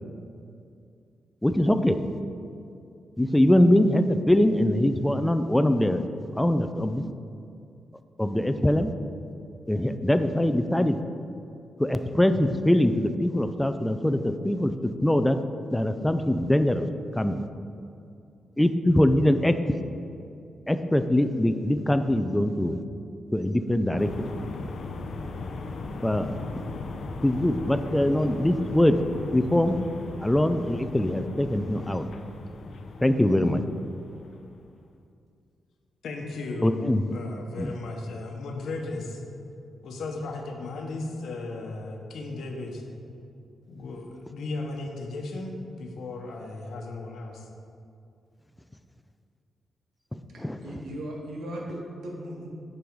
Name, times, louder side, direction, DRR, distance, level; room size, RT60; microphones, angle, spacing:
voice 1, 1.4-2.0 3.2-6.1 6.4-7.0 8.2-8.9 9.7-11.0 11.8-15.4 15.7-16.9 17.1-17.4 18.6-19.8 20.7-22.8 23.3-24.3 26.0-26.4 27.2-29.0 29.3-29.8 30.2-32.1 33.0-33.6 36.6-37.1 37.6-37.7 50.1-50.6, left 1 dB, 10° left, 9 dB, 0.4 m, -23 dB
sound 1, 24.0-34.8, left 3 dB, 65° left, 0.5 m, -38 dB
voice 2, 36.0-39.2 39.8-42.8 43.7-47.5, left 2 dB, 80° left, 2 dB, 1.0 m, -35 dB
voice 3, 50.3-52.5, right 1 dB, 80° right, -2 dB, 1.6 m, -37 dB
8.5 x 5.4 x 4.7 m, 2.5 s
cardioid pair, 90°, 0 cm